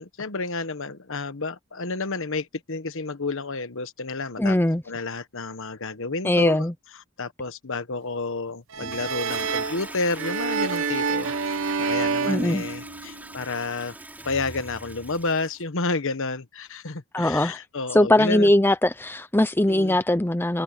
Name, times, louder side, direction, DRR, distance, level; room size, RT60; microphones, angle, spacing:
voice 1, 0.0-4.6 4.9-6.7 6.9-14.0 14.2-18.5 19.7-20.0, left 3 dB, 60° left, 1.3 m, -31 dB
voice 2, 4.4-4.8 6.2-6.7 12.2-12.6 17.1-17.6 17.9-20.6, left 1 dB, 10° left, 0.7 m, -20 dB
sound 1, 8.7-13.3, right 5 dB, 60° right, 1.1 m, -28 dB
Toilet flush, 8.8-15.6, right 1 dB, 10° right, 4.3 m, -41 dB
head